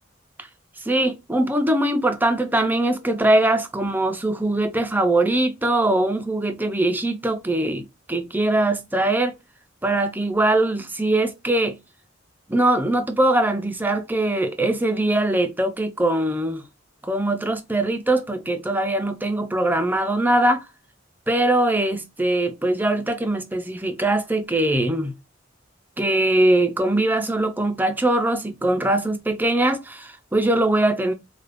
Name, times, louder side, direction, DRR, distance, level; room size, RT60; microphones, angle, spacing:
voice 1, 0.8-9.3 9.8-11.8 12.5-16.6 17.0-20.6 21.3-25.1 26.0-31.1, right 1 dB, 10° right, 0.6 m, -21 dB
4.9 x 2.4 x 2.5 m
head